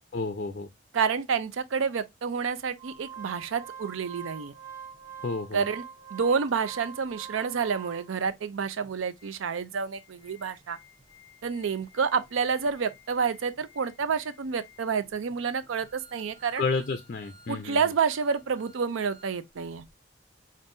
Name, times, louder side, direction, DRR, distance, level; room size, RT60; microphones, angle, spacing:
voice 1, 0.1-0.7 5.2-5.6 16.6-17.8, left 4 dB, 45° left, 0.4 m, -30 dB
voice 2, 0.9-4.5 5.5-5.8 6.1-10.8 11.4-16.6 17.5-19.8, right 6 dB, 80° right, 0.5 m, -29 dB
Organ, 2.8-8.3 8.8-8.9 9.2-9.3 9.8-19.4 19.7-19.8, right 6 dB, 20° right, 1.1 m, -47 dB
5.4 x 2.5 x 2.5 m
head